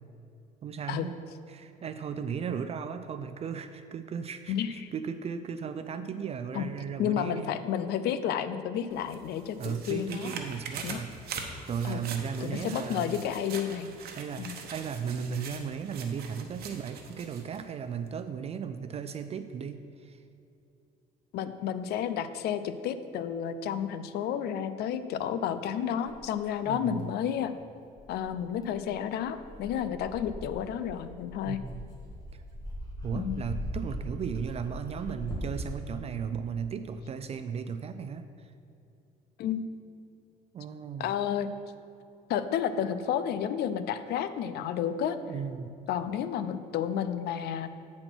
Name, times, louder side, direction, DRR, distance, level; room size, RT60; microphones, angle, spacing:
voice 1, 0.6-1.2 1.5-7.6 9.6-11.1 11.7-13.2 14.2-20.2 26.7-27.1 31.5-31.8 32.3-32.4 33.0-38.5 40.5-41.1 45.2-45.7, right 7 dB, 40° right, 10 dB, 0.4 m, -36 dB
voice 2, 4.5-4.9 6.5-6.7 7.0-10.3 10.8-11.0 11.8-12.0 12.4-13.9 14.4-14.6 21.3-27.5 28.1-31.6 33.1-33.4 39.4-39.6 41.0-41.5 42.3-45.2 45.9-47.8, left 9 dB, 75° left, 12 dB, 0.5 m, -31 dB
sound 1, 8.9-17.6 18.1-18.2, right 5 dB, 65° right, 1.0 m, -43 dB
Dog, 26.1-26.2 27.0-27.1 28.0-35.9, equal, 20° left, 2.1 m, -40 dB
8.8 x 4.3 x 6.1 m, 2.6 s
cardioid pair, 110°, 17 cm